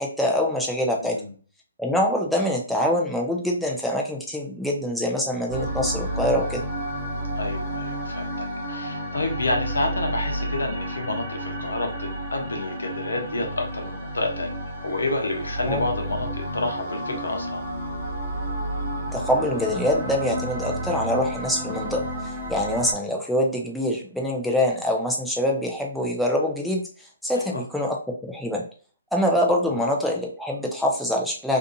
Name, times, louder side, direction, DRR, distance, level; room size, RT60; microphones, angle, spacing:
voice 1, 0.0-1.2 1.8-6.6 15.7-15.8 19.1-22.0 22.5-26.8 27.2-28.0 28.2-28.6 29.1-31.6, left 1 dB, ahead, -2 dB, 0.5 m, -24 dB
voice 2, 1.0-1.3 7.4-14.5 14.8-17.7 27.3-27.6 29.7-29.9, left 2 dB, 85° left, 3 dB, 0.8 m, -29 dB
sound 1, 5.5-22.9, right 1 dB, 20° right, 1.1 m, -31 dB
2.6 x 2.4 x 2.6 m, 0.40 s
hypercardioid pair, 150°, 0 cm